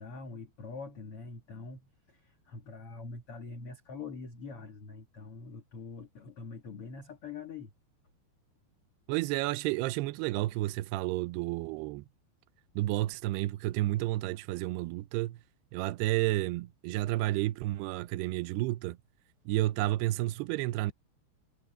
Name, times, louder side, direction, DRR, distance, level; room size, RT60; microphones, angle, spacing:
voice 1, 0.0-7.7, left 4 dB, 50° left, 1.8 m, -44 dB
voice 2, 9.1-12.0 12.8-15.4 15.7-19.0 19.5-20.9, right 17 dB, 80° right, 2.5 m, -31 dB
omnidirectional pair, 5.2 m